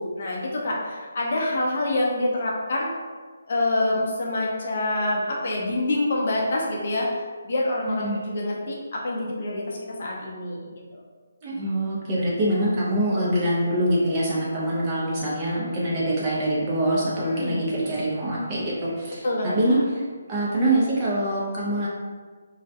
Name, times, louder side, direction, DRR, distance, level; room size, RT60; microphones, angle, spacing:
voice 1, 0.0-2.9 3.5-10.7 10.9-11.0 17.2-17.6 19.2-19.8, left 1 dB, 55° left, -3 dB, 0.6 m, -26 dB
voice 2, 11.4-19.3 19.5-19.8 20.3-21.9, right 1 dB, 25° right, -6 dB, 0.6 m, -24 dB
2.3 x 2.1 x 2.7 m, 1.5 s
hypercardioid pair, 165°, 0 cm